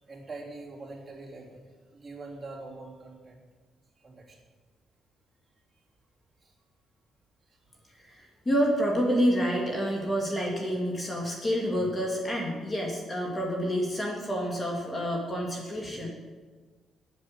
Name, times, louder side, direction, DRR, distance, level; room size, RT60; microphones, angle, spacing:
voice 1, 0.0-1.6 1.9-3.4 4.0-4.4 6.4-6.5 7.5-7.8 8.1-8.2, right 3 dB, 20° right, -5 dB, 3.2 m, -44 dB
voice 2, 8.1-16.1, equal, 25° left, -1 dB, 2.0 m, -28 dB
9.7 x 8.1 x 6.4 m, 1.4 s
cardioid pair, 90°, 0 cm